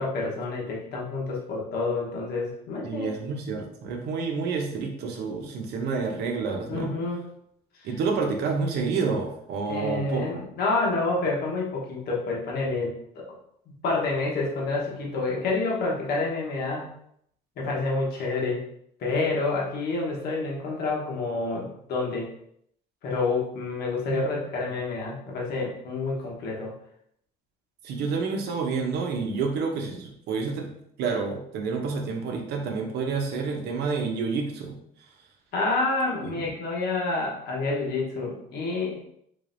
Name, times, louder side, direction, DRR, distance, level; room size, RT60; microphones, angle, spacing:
voice 1, 0.0-3.1 6.7-7.3 7.8-7.9 9.7-13.3 13.7-16.9 17.6-18.6 19.0-22.3 23.0-26.7 35.5-39.0, left 3 dB, 70° left, -3 dB, 1.1 m, -28 dB
voice 2, 2.8-6.9 7.8-10.2 24.1-24.3 27.8-30.7 31.0-34.8 36.2-36.5, right 4 dB, 75° right, 3 dB, 0.8 m, -29 dB
3.8 x 3.3 x 2.6 m, 0.71 s
cardioid pair, 110°, 17 cm